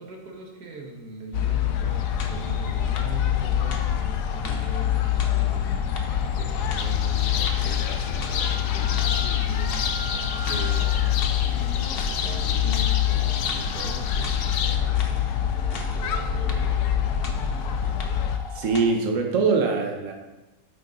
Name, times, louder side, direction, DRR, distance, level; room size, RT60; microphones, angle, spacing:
voice 1, 0.0-9.9 10.5-16.8, right 2 dB, 85° right, 1 dB, 2.0 m, -41 dB
sound 1, 1.3-18.4, left 9 dB, 85° left, 1.3 m, -25 dB
sound 2, 1.9-18.9, left 4 dB, 45° left, 1.0 m, -40 dB
sound 3, 6.8-14.8, left 7 dB, 65° left, 1.1 m, -32 dB
voice 2, 18.5-20.1, right 4 dB, 55° right, 2 dB, 1.4 m, -23 dB
8.9 x 8.3 x 3.9 m, 1.0 s
omnidirectional pair, 1.6 m